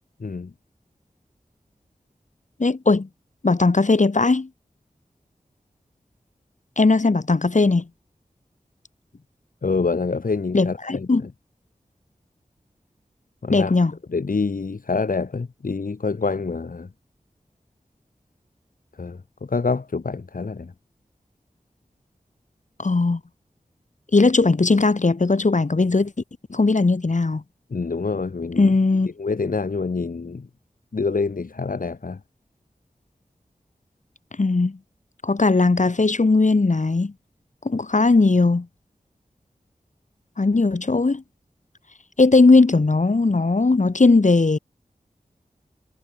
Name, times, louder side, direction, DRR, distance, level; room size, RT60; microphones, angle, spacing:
voice 1, 2.6-3.1 3.4-4.5 6.8-7.8 10.5-11.2 13.5-13.9 22.8-23.2 24.1-26.1 26.5-27.4 28.6-29.1 34.4-34.8 35.2-37.1 37.6-38.7 40.4-41.2 42.2-44.6, left 3 dB, 60° left, 4.5 m, -18 dB
voice 2, 9.6-11.1 13.4-13.7 14.1-16.9 19.0-20.7 27.7-28.7 29.2-30.5 30.9-32.2, left 4 dB, 75° left, 3.3 m, -26 dB
cardioid pair, 40°, 14 cm